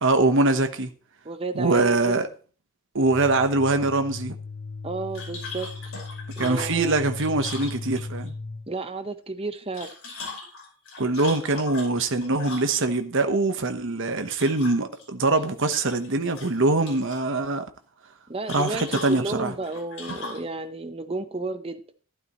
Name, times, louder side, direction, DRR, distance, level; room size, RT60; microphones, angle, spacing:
voice 1, 0.0-0.9 1.5-2.3 2.9-4.4 6.4-8.3 11.0-17.6 18.5-19.5, right 2 dB, 60° right, 1.1 m, -23 dB
voice 2, 1.2-2.2 4.8-5.7 6.4-6.9 8.7-9.9 18.3-21.8, right 3 dB, 25° right, 0.8 m, -32 dB
sound 1, 3.0-8.7, left 3 dB, 80° left, 3.5 m, -37 dB
sound 2, 5.1-8.3 9.6-13.0 14.3-15.0 15.4-16.1 16.3-17.2 18.5-20.5, left 3 dB, 60° left, 5.3 m, -39 dB
12.5 x 12.0 x 3.1 m
head